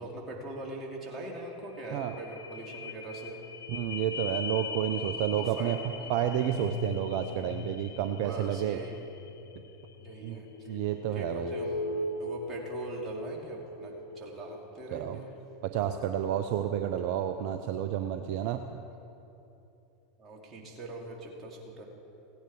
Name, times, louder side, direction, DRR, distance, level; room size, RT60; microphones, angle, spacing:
voice 1, 0.0-3.4 4.9-6.2 8.2-9.0 10.0-10.8 11.1-15.3 20.2-21.9, right 1 dB, 30° right, -1 dB, 2.8 m, -42 dB
sound 1, 1.1-1.2 1.4-17.4 17.9-18.0, left 3 dB, 75° left, 0.7 m, -40 dB
voice 2, 3.7-8.8 10.2-11.6 14.9-15.2 15.6-18.6, right 10 dB, 55° right, 7 dB, 0.6 m, -30 dB
17.0 x 9.2 x 4.8 m, 2.9 s
figure-of-eight pair, 85°, 0 cm